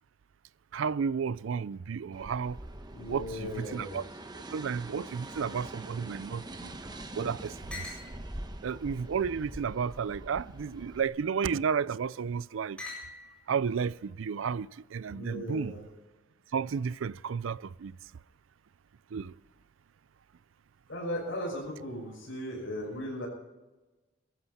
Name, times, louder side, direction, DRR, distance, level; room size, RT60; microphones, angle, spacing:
voice 1, 0.7-2.6 3.1-4.0 4.5-6.7 7.1-7.9 8.6-12.8 13.5-15.7 16.5-17.9 19.1-19.3, right 6 dB, 75° right, 0.4 m, -32 dB
sound 1, 2.1-11.0, right 1 dB, 20° right, 1.1 m, -44 dB
voice 2, 2.9-4.0 15.1-15.8 20.9-23.3, equal, 70° left, 6.4 m, -37 dB
sound 2, 5.2-6.8 7.1-7.2 7.7-8.1 8.8-9.7 10.5-10.9 11.8-12.2 12.8-13.4, left 3 dB, 5° left, 7.6 m, -47 dB
23.0 x 13.5 x 4.2 m
head